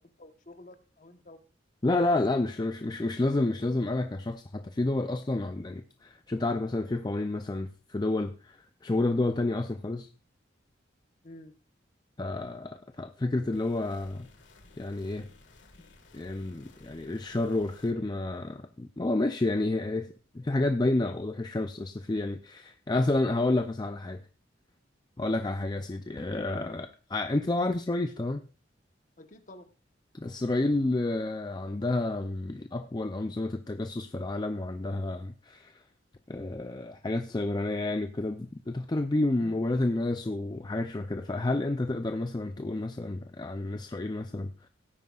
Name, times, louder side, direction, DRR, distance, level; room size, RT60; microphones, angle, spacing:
voice 1, 0.2-1.4 2.0-2.4 11.2-11.6 29.2-29.7 39.4-39.6, left 2 dB, 40° left, 1.1 m, -49 dB
voice 2, 1.8-10.1 12.2-14.3 14.8-15.3 16.1-24.2 25.2-28.4 30.1-35.8 36.3-44.5, left 2 dB, 20° left, 0.4 m, -30 dB
sound 1, 13.5-17.9, left 2 dB, 70° left, 1.8 m, -56 dB
17.5 x 9.3 x 2.4 m
head